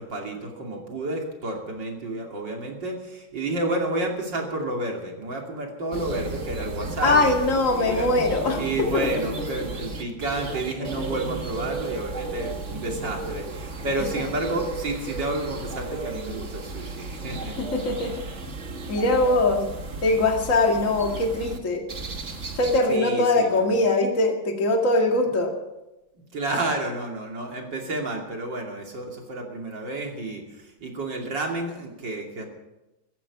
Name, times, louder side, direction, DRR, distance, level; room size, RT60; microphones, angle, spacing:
voice 1, 0.0-7.3 7.8-8.1 8.5-17.6 22.9-23.7 26.1-32.5, right 2 dB, 55° right, 1 dB, 3.3 m, -30 dB
sound 1, 5.9-21.6 21.9-22.8, right 3 dB, 35° right, 1.7 m, -34 dB
voice 2, 7.0-8.6 8.9-9.1 17.6-18.1 18.9-19.6 20.0-21.8 22.5-25.5, left 2 dB, 35° left, 2 dB, 2.5 m, -22 dB
16.0 x 14.5 x 6.0 m, 0.96 s
omnidirectional pair, 2.4 m